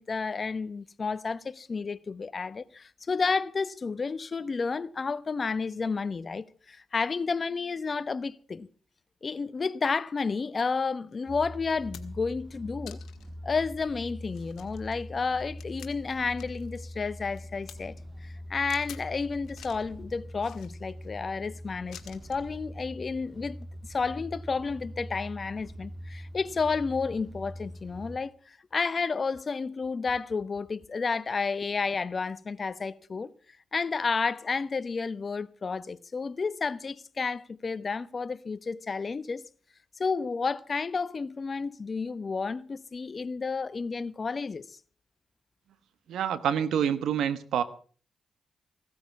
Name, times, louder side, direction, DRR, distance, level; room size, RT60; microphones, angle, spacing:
voice 1, 0.0-8.7 9.2-13.0 13.4-17.9 18.2-33.3 33.7-39.4 40.0-44.6, left 4 dB, 45° left, 1.0 m, -31 dB
sound 1, 11.1-11.2 11.6-12.3 12.9-13.3 13.8-13.9 14.3-16.7 17.0-17.8 18.7-19.1 19.4-19.9 20.4-21.1 21.9-22.4 23.5-23.7, left 10 dB, 85° left, 1.8 m, -49 dB
sound 2, 11.3-28.2, equal, 35° right, 2.4 m, -43 dB
voice 2, 46.1-47.6, right 9 dB, 85° right, 1.4 m, -27 dB
17.0 x 13.0 x 5.9 m
cardioid pair, 70°, 0 cm